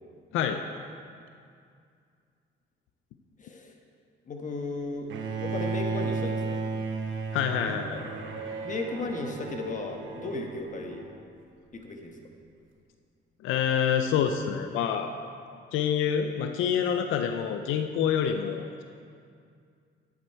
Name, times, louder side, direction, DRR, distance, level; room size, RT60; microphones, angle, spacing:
voice 1, 3.4-3.7 4.3-5.1 5.4-6.7 8.6-11.1 11.7-12.2, left 3 dB, 40° left, 3 dB, 1.2 m, -35 dB
Bowed string instrument, 5.1-11.2, right 4 dB, 75° right, 1.0 m, -34 dB
voice 2, 7.3-8.0 13.4-15.1 15.7-18.8, left 8 dB, 90° left, 6 dB, 0.5 m, -27 dB
9.5 x 7.7 x 4.6 m, 2.3 s
cardioid pair, 90°, 20 cm